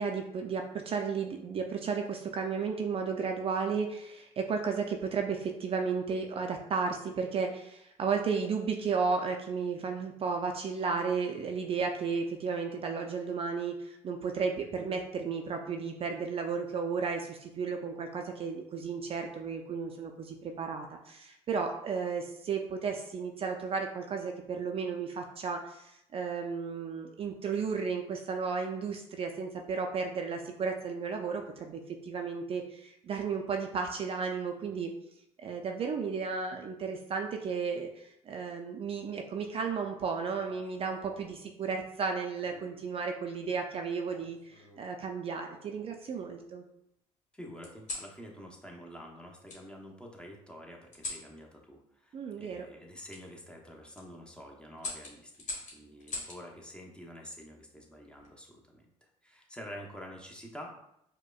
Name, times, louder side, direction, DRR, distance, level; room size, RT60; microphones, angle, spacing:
voice 1, 0.0-34.9 35.4-46.6 52.1-52.7, right 5 dB, 45° right, 3 dB, 0.4 m, -33 dB
sound 1, 40.3-41.4 42.4-42.8 44.1-44.9 45.5-46.4 47.6-48.1 49.5-49.6 50.9-51.3 53.1-53.2 53.8-54.0 54.8-56.4 57.9-58.3, left 2 dB, 60° left, 1.2 m, -43 dB
voice 2, 47.3-60.8, equal, 5° left, 0 dB, 0.8 m, -48 dB
4.8 x 2.1 x 2.3 m, 0.79 s
supercardioid pair, 70°, 14 cm